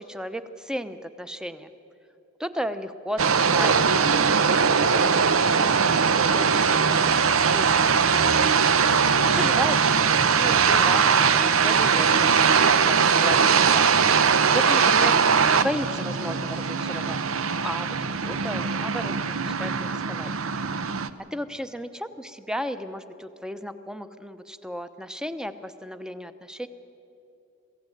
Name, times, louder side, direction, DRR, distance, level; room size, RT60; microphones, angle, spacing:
voice 1, 0.0-1.7 2.4-8.2 9.2-13.9 14.5-18.0 18.2-20.3 21.3-26.7, equal, 5° right, 10 dB, 0.8 m, -35 dB
sound 1, 3.2-21.1, right 6 dB, 75° right, 0.8 m, -21 dB
23.0 x 16.0 x 9.2 m, 2.8 s
head